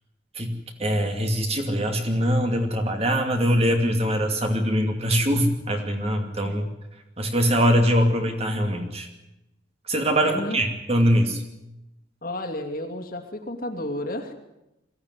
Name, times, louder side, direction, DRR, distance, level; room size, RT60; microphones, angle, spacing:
voice 1, 0.3-6.7 7.2-9.1 9.9-11.4, equal, 30° right, 4 dB, 2.5 m, -23 dB
voice 2, 10.2-10.6 12.2-14.3, left 1 dB, 50° left, 2 dB, 2.6 m, -32 dB
22.0 x 15.5 x 9.7 m, 0.92 s
head